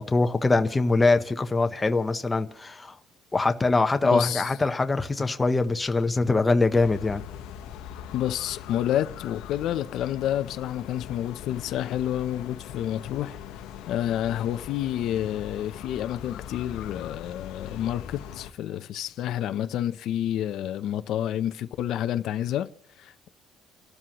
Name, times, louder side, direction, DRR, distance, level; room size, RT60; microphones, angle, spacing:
voice 1, 0.0-3.0 3.3-7.2, left 3 dB, 15° left, 0.8 m, -23 dB
voice 2, 4.0-4.5 8.1-13.6 13.9-22.7 23.0-23.3, left 11 dB, 60° left, 0.6 m, -29 dB
sound 1, 6.7-18.5, left 9 dB, 85° left, 1.0 m, -41 dB
30.0 x 12.5 x 3.0 m
cardioid pair, 160°, 0 cm